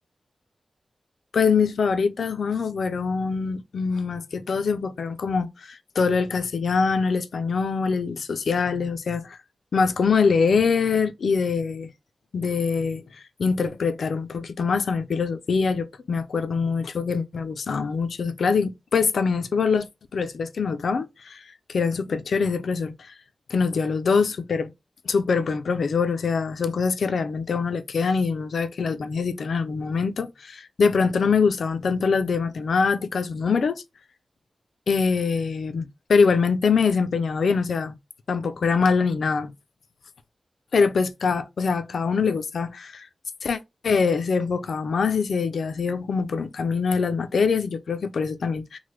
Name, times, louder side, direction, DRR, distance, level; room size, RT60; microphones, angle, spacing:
voice 1, 1.3-9.4 9.7-11.9 12.3-13.0 13.4-19.9 20.1-21.4 21.7-23.1 23.5-24.7 25.1-33.8 34.9-37.9 38.3-39.5 40.7-43.1 43.4-43.6 43.8-48.8, left 5 dB, 80° left, 0.3 m, -24 dB
3.1 x 2.1 x 3.0 m
wide cardioid pair, 135°, 0 cm